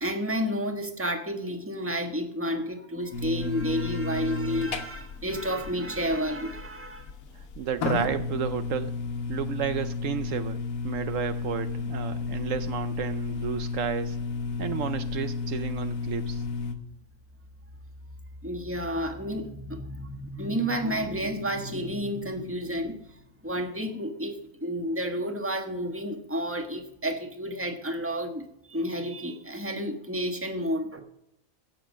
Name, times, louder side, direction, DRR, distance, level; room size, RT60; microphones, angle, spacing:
voice 1, 0.0-7.1 18.4-23.1 23.4-31.0, equal, 10° right, 5 dB, 1.3 m, -31 dB
sound 1, 3.1-16.7, left 4 dB, 80° left, 1.5 m, -33 dB
voice 2, 7.6-9.0 9.3-14.2 14.6-16.4, right 9 dB, 70° right, 11 dB, 1.0 m, -32 dB
16.5 x 6.7 x 6.4 m, 0.82 s
omnidirectional pair, 1.4 m